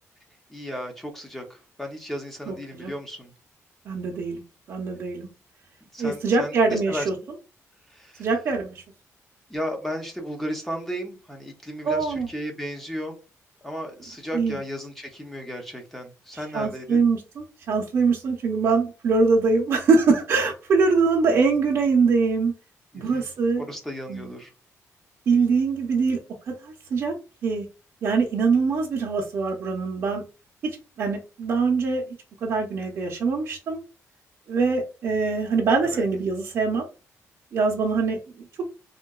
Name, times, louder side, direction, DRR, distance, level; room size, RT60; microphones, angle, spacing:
voice 1, 0.5-3.3 5.9-7.1 7.9-8.3 9.5-13.2 13.6-17.1 22.9-23.2 23.6-24.5 35.8-36.0, equal, 5° left, 2 dB, 0.6 m, -34 dB
voice 2, 2.5-2.9 3.9-4.4 4.7-5.3 6.0-7.1 8.2-8.8 11.8-12.3 14.3-14.6 16.5-22.5 22.9-23.6 24.1-24.3 25.3-26.2 26.6-27.1 27.4-27.7 28.0-30.2 31.0-32.0 32.4-33.8 34.5-36.9 37.5-38.2, right 4 dB, 50° right, -1 dB, 0.6 m, -23 dB
3.7 x 2.2 x 2.3 m, 0.32 s
cardioid pair, 170°, 6 cm